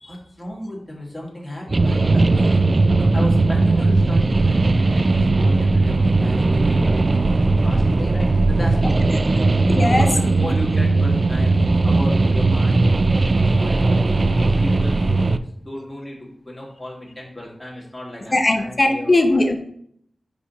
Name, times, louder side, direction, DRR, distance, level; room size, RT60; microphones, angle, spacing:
voice 1, 0.0-2.6 3.0-9.4 9.8-11.6 11.8-19.4, left 1 dB, 10° left, -3 dB, 2.3 m, -35 dB
sound 1, 1.7-15.4, right 3 dB, 45° right, 0.3 m, -18 dB
voice 2, 9.7-10.1 18.3-19.6, left 2 dB, 40° left, 5 dB, 0.9 m, -19 dB
5.1 x 5.0 x 4.0 m, 0.66 s
wide cardioid pair, 65°, 0 cm